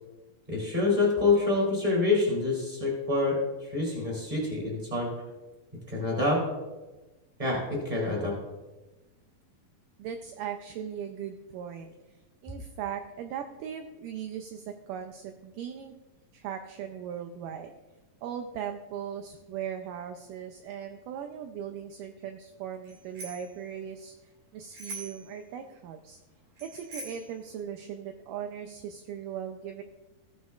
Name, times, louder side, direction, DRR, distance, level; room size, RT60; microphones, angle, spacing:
voice 1, 0.5-5.1 5.9-6.5 7.4-8.3, left 3 dB, 10° right, -3 dB, 3.4 m, -26 dB
voice 2, 10.0-11.9 12.4-15.9 16.3-17.7 18.2-24.1 24.5-26.2 26.6-29.8, right 8 dB, 80° right, 6 dB, 2.1 m, -38 dB
Bicycle bell, 22.8-23.5 24.7-25.3 26.6-27.3, right 2 dB, 50° right, 3.0 m, -43 dB
15.5 x 9.5 x 2.4 m, 1.1 s
omnidirectional pair, 4.1 m